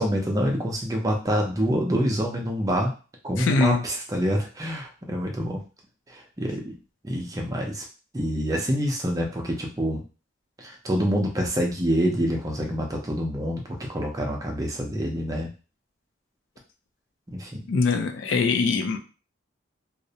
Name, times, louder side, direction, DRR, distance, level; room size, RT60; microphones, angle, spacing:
voice 1, 0.0-2.9 3.2-5.6 6.1-6.8 7.0-7.8 8.1-10.0 10.6-15.5 17.3-17.5, equal, 20° right, 1 dB, 0.5 m, -26 dB
voice 2, 3.4-3.8 17.7-19.0, left 4 dB, 75° left, 6 dB, 0.4 m, -23 dB
2.5 x 2.0 x 2.7 m, 0.34 s
head